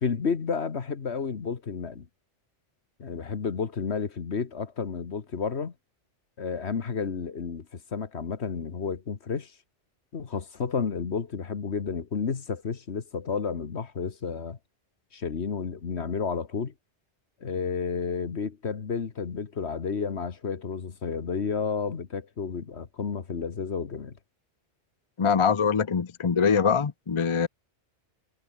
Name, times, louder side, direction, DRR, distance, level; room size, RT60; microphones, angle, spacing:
voice 1, 0.0-2.1 3.0-5.7 6.4-9.5 10.1-14.6 15.1-16.7 17.4-24.1, left 5 dB, 65° left, 1.7 m, -31 dB
voice 2, 25.2-27.5, left 6 dB, 35° left, 0.6 m, -23 dB
omnidirectional pair, 1.2 m